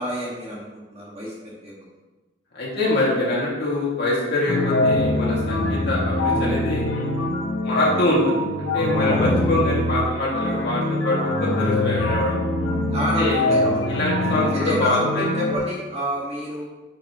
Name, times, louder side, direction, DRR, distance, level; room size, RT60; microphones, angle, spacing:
voice 1, 0.0-1.7 9.1-9.3 12.9-13.8 14.5-16.6, equal, 30° right, -5 dB, 1.9 m, -28 dB
voice 2, 2.5-6.9 7.6-12.4 13.2-13.4 13.9-15.3, left 2 dB, 50° left, -6 dB, 2.3 m, -24 dB
sound 1, 4.5-15.6, left 1 dB, 80° left, 1.2 m, -23 dB
9.4 x 5.6 x 3.1 m, 1.1 s
head